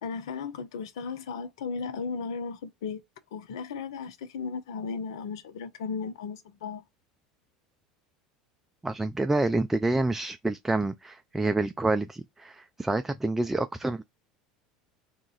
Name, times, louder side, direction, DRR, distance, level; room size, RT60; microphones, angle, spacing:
voice 1, 0.0-3.0 3.3-6.8, left 5 dB, 75° left, 0.5 m, -35 dB
voice 2, 8.8-14.0, right 2 dB, 10° right, 0.4 m, -28 dB
2.9 x 2.4 x 3.9 m
hypercardioid pair, 75°, 3 cm